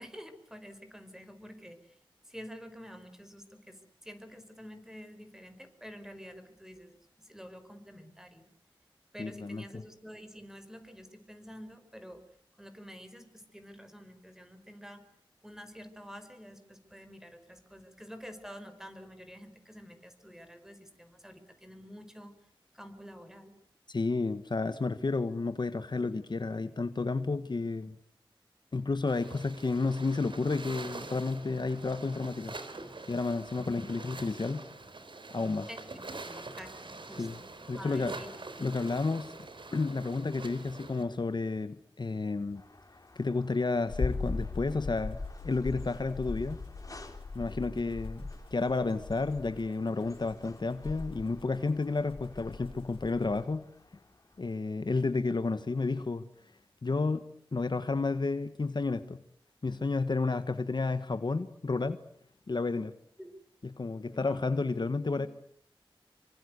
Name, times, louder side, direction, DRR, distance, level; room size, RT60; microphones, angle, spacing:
voice 1, 0.0-2.0 2.2-8.5 9.1-12.2 12.6-15.0 15.4-22.3 22.7-23.6 35.7-37.4 37.8-38.3 63.2-63.3 64.1-64.4 65.1-65.3, equal, 5° right, 8 dB, 5.1 m, -49 dB
voice 2, 9.2-9.8 23.9-27.9 28.7-32.5 33.1-34.6 35.3-35.7 37.2-37.4 37.7-38.1 38.6-39.3 39.7-42.6 43.2-46.6 47.3-48.2 48.5-53.6 54.4-56.2 56.8-57.2 57.5-59.2 59.6-62.0 62.5-62.9 63.8-65.3, left 3 dB, 55° left, 11 dB, 1.3 m, -31 dB
sound 1, 29.1-41.0, right 3 dB, 60° right, 3.9 m, -45 dB
sound 2, 42.5-54.6, left 2 dB, 40° left, 3.8 m, -56 dB
sound 3, 43.9-53.4, left 3 dB, 90° left, 5.3 m, -39 dB
27.5 x 24.5 x 8.2 m, 0.65 s
wide cardioid pair, 70°, 9 cm